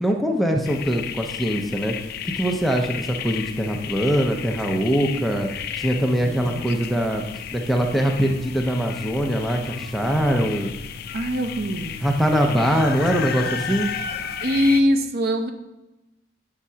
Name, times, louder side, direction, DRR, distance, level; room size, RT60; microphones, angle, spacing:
voice 1, 0.0-2.0 2.2-5.5 5.8-7.2 7.5-10.7 12.0-13.9, equal, ahead, 2 dB, 0.6 m, -22 dB
sound 1, 0.6-14.8, left 8 dB, 55° left, 0.4 m, -33 dB
voice 2, 6.2-6.7 11.1-12.0 14.4-15.5, equal, 55° right, 7 dB, 0.6 m, -22 dB
7.1 x 3.7 x 5.6 m, 0.98 s
head